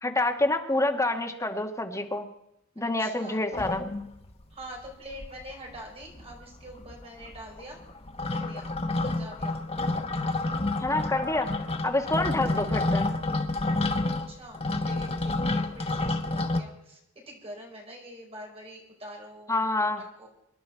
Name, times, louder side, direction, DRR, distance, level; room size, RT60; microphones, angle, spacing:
voice 1, 0.0-2.3 2.8-3.8 10.8-11.5 11.8-13.1 19.5-20.0, left 2 dB, 15° left, 4 dB, 1.5 m, -27 dB
voice 2, 3.0-3.4 4.5-7.8 8.3-8.8 9.0-9.6 11.9-12.2 14.3-17.0 17.3-19.6 20.0-20.3, equal, 30° right, 0 dB, 4.9 m, -45 dB
sound 1, 3.5-4.4 4.8-4.9 5.1-5.8 6.0-16.6, left 2 dB, 30° left, 1.1 m, -29 dB
25.5 x 11.0 x 4.5 m, 0.82 s
head